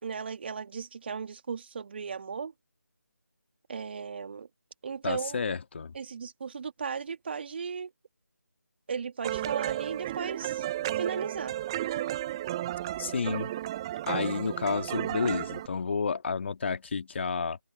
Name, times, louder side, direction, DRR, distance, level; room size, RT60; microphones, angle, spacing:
voice 1, 0.0-2.5 3.7-4.5 4.8-5.4 5.9-7.9 8.9-10.7 11.0-11.5, right 6 dB, 35° right, 2.1 m, -36 dB
voice 2, 5.0-5.9 13.0-13.5 14.1-17.6, left 5 dB, 40° left, 2.2 m, -31 dB
sound 1, 9.2-15.7, right 13 dB, 15° right, 1.0 m, -33 dB
figure-of-eight pair, 160°, 10 cm